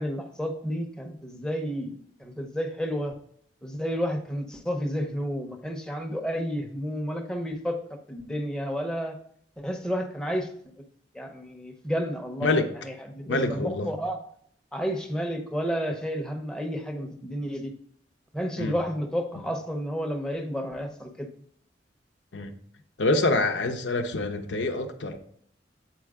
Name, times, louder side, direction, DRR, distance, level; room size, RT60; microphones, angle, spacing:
voice 1, 0.0-3.1 3.6-7.8 8.1-9.2 9.6-10.5 11.1-14.2 14.7-17.7 18.3-21.3, equal, 5° left, 0.7 m, -31 dB
voice 2, 13.3-13.9 18.6-18.7 22.3-22.5 23.0-25.2, left 2 dB, 85° left, 0.7 m, -26 dB
7.7 x 4.5 x 3.6 m
head